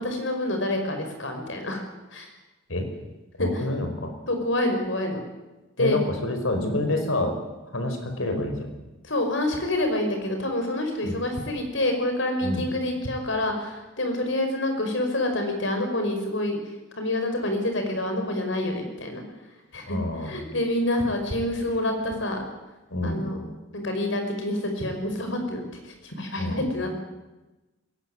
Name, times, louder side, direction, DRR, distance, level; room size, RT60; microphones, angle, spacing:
voice 1, 0.0-1.8 2.1-2.3 3.4-3.7 4.3-5.2 5.8-6.0 9.0-16.6 17.0-19.2 19.7-22.4 23.0-23.5 23.7-27.0, left 1 dB, 70° left, 4 dB, 5.5 m, -27 dB
voice 2, 3.4-4.1 5.8-7.3 7.7-8.7 11.0-11.1 12.4-12.6 19.9-20.3 22.9-23.2 26.4-26.6, left 1 dB, 90° left, 5 dB, 5.0 m, -28 dB
21.0 x 18.0 x 9.9 m, 1.1 s
head